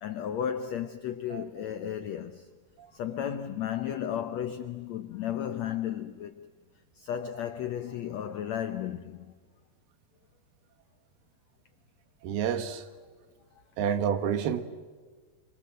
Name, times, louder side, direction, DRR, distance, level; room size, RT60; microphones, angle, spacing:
voice 1, 0.0-2.5 2.9-6.5 7.0-9.3, left 9 dB, 85° left, 1.5 m, -34 dB
voice 2, 12.2-12.8 13.8-14.6, right 8 dB, 85° right, 3.3 m, -28 dB
28.5 x 25.5 x 7.7 m
omnidirectional pair, 4.4 m